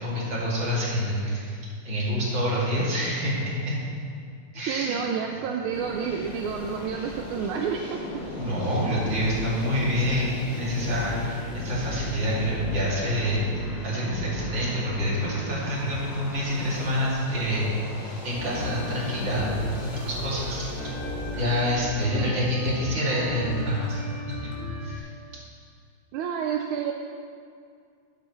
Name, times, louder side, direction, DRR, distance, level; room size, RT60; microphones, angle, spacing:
voice 1, 0.0-1.6 1.9-3.8 4.5-5.0 8.4-20.7 21.4-24.1 24.4-24.5 24.8-25.1, equal, 60° right, -7 dB, 3.3 m, -27 dB
voice 2, 4.6-8.0 22.1-22.4 26.1-26.9, right 7 dB, 80° right, 2 dB, 1.4 m, -29 dB
sound 1, 5.7-21.7, left 1 dB, 60° left, 2.2 m, -37 dB
sound 2, 18.3-25.0, left 1 dB, 10° left, 1.6 m, -37 dB
13.0 x 11.0 x 3.1 m, 2.3 s
omnidirectional pair, 2.4 m